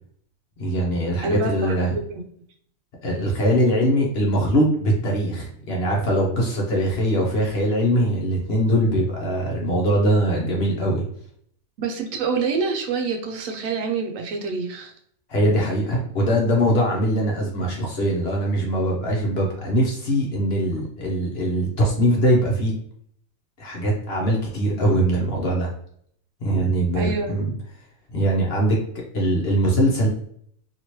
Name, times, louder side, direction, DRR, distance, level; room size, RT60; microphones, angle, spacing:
voice 1, 0.6-2.0 3.0-11.0 15.3-22.7 23.6-25.7 26.4-27.5 28.1-28.8 29.1-30.1, right 1 dB, 55° left, -2 dB, 0.9 m, -22 dB
voice 2, 1.2-2.2 11.8-14.9 26.9-27.4, right 4 dB, 70° right, 4 dB, 0.9 m, -27 dB
2.9 x 2.8 x 3.0 m, 0.65 s
omnidirectional pair, 1.5 m